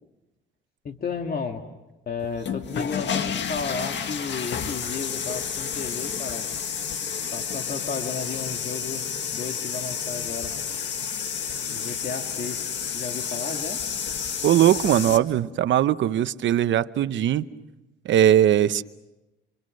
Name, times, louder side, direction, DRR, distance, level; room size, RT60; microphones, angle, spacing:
voice 1, 0.8-1.6 2.1-6.5 7.3-10.6 11.1-11.2 11.7-12.7 12.9-13.8, left 5 dB, 50° left, 4 dB, 1.9 m, -33 dB
sound 1, 2.3-15.2, left 7 dB, 65° left, 1.8 m, -30 dB
voice 2, 14.4-17.4 18.0-18.8, right 11 dB, 70° right, 13 dB, 0.9 m, -20 dB
28.0 x 25.0 x 6.5 m, 1.0 s
cardioid pair, 90°, 20 cm